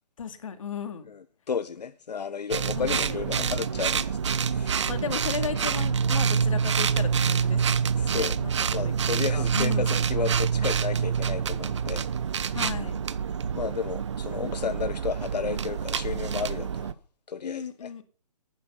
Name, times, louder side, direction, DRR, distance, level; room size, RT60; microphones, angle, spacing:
voice 1, 0.2-1.1 2.8-3.6 4.9-7.6 8.0-9.9 12.5-13.0 17.4-18.0, left 7 dB, 55° left, 2.3 m, -35 dB
voice 2, 1.1-4.9 8.0-8.4 8.6-12.1 13.6-17.0 17.3-17.9, left 6 dB, 80° left, 1.0 m, -33 dB
sound 1, 2.5-16.9, right 7 dB, 45° right, 0.7 m, -27 dB
11.5 x 9.6 x 6.9 m
hypercardioid pair, 170°, 21 cm